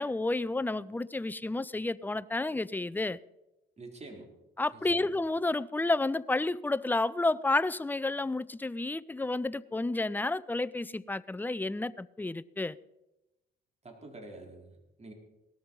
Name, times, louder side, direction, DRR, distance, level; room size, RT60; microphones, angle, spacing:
voice 1, 0.0-3.2 4.6-12.8, left 2 dB, 10° left, 0.5 m, -31 dB
voice 2, 3.8-4.3 4.7-5.1 13.8-15.1, right 2 dB, 35° right, 4.0 m, -47 dB
18.0 x 13.5 x 5.5 m
cardioid pair, 90°, 20 cm